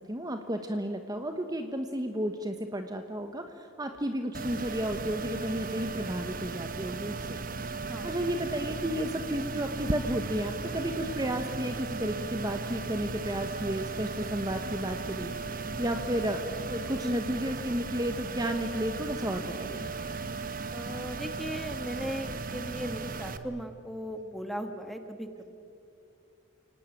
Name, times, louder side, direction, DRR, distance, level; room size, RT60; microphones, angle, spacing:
voice 1, 0.1-7.4 8.0-19.9, equal, 20° right, 6 dB, 1.2 m, -32 dB
sound 1, 4.3-23.4, right 4 dB, 45° right, 1.1 m, -36 dB
voice 2, 20.7-25.5, equal, ahead, 6 dB, 1.6 m, -38 dB
29.5 x 18.5 x 9.1 m, 2.7 s
head